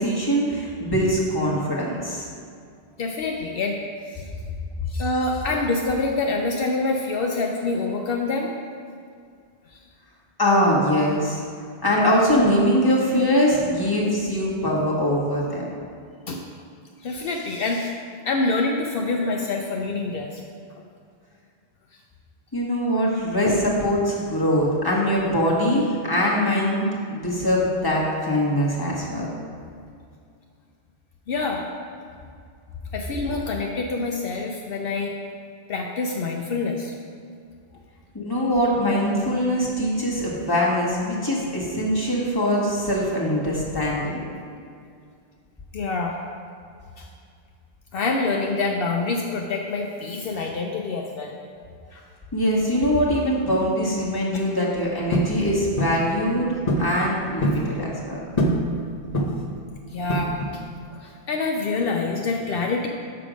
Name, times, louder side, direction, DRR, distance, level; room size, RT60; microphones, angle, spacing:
voice 1, 0.0-2.3 10.4-11.4 11.8-15.7 22.5-29.3 38.1-44.2 52.3-58.2, equal, 20° left, -5 dB, 1.5 m, -22 dB
voice 2, 3.0-3.8 4.1-4.3 4.9-8.5 9.7-9.8 16.3-16.4 17.0-17.9 18.3-20.4 23.5-23.6 31.3-31.6 32.9-35.1 35.7-36.9 45.7-46.2 47.0-47.1 47.9-51.4 51.9-52.0 59.9-60.6 60.9-62.9, left 3 dB, 65° left, 1 dB, 0.8 m, -26 dB
sound 1, 55.1-55.4 55.8-56.0 56.7-56.9 57.2-57.7 58.4-58.7 59.1-59.5 60.1-60.6, equal, 40° left, 1.0 m, -23 dB
7.0 x 6.7 x 5.0 m, 2.3 s
omnidirectional pair, 1.1 m